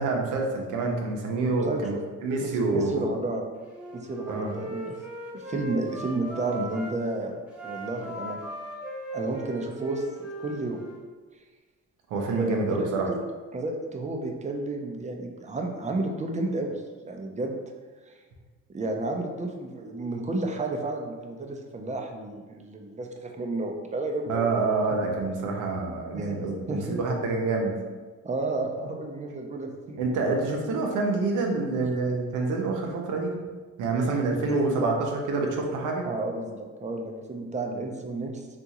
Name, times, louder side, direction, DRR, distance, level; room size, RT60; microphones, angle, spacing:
voice 1, 0.0-3.0 4.3-4.5 12.1-13.1 24.3-27.8 30.0-33.3 33.8-36.0, right 3 dB, 85° right, 1 dB, 0.6 m, -27 dB
voice 2, 1.6-2.0 2.4-3.4 3.9-5.0 5.3-8.4 9.1-10.8 12.3-13.2 13.5-17.6 18.1-18.2 18.7-24.5 26.1-26.3 26.7-27.0 28.2-30.0 34.5-35.0 36.0-38.5, right 2 dB, 25° right, 2 dB, 0.4 m, -32 dB
Wind instrument woodwind instrument, 3.6-6.9 7.5-11.0, right 1 dB, 5° right, 0.9 m, -38 dB
3.6 x 2.4 x 2.8 m, 1.4 s
cardioid pair, 90°, 30 cm